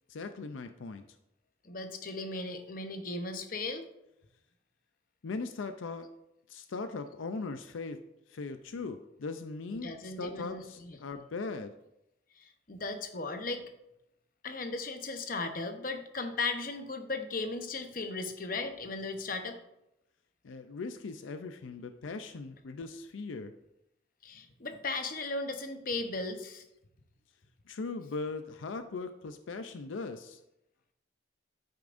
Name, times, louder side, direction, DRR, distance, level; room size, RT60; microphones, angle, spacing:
voice 1, 0.1-1.0 5.2-6.1 6.5-8.0 8.3-11.7 20.4-23.5 27.7-30.4, left 3 dB, 85° left, 9 dB, 0.5 m, -39 dB
voice 2, 1.6-3.8 9.7-11.0 12.4-13.6 14.4-19.6 24.2-26.6, left 3 dB, 45° left, 6 dB, 0.9 m, -36 dB
9.5 x 8.5 x 2.6 m, 0.86 s
head